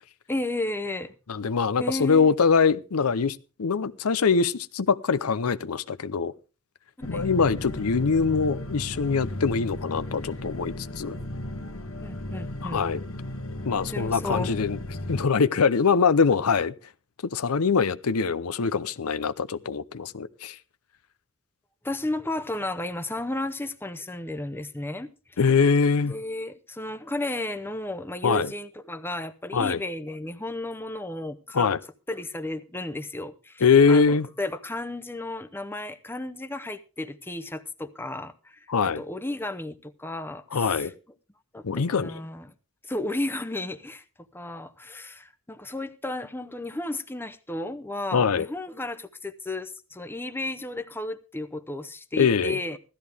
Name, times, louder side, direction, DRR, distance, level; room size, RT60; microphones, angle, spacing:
voice 1, 0.3-1.1 1.8-2.3 7.0-7.3 12.0-12.8 13.6-14.6 21.8-25.4 26.0-31.7 32.1-40.9 41.5-42.5 42.8-44.0 44.3-52.8, left 2 dB, 10° left, 0.7 m, -33 dB
voice 2, 1.3-6.3 7.1-11.2 12.6-13.0 13.6-14.8 15.1-16.7 17.3-20.6 25.4-26.1 28.2-28.5 29.5-29.8 31.5-31.8 33.6-34.3 38.7-39.0 40.5-40.9 41.6-42.2 48.1-48.5 52.1-52.6, left 5 dB, 90° left, 0.6 m, -23 dB
sound 1, 7.0-15.3, left 1 dB, 70° left, 1.4 m, -35 dB
16.0 x 13.0 x 3.4 m
head